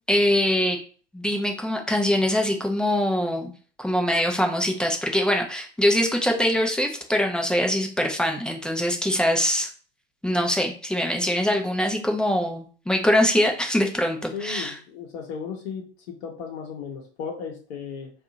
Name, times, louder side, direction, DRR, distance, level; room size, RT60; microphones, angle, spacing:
voice 1, 0.1-0.8 1.1-3.5 3.8-9.7 10.2-14.7, left 1 dB, ahead, 2 dB, 0.4 m, -23 dB
voice 2, 14.3-18.1, left 6 dB, 60° left, 0 dB, 0.8 m, -35 dB
2.7 x 2.4 x 3.8 m, 0.41 s
figure-of-eight pair, 85°, 35 cm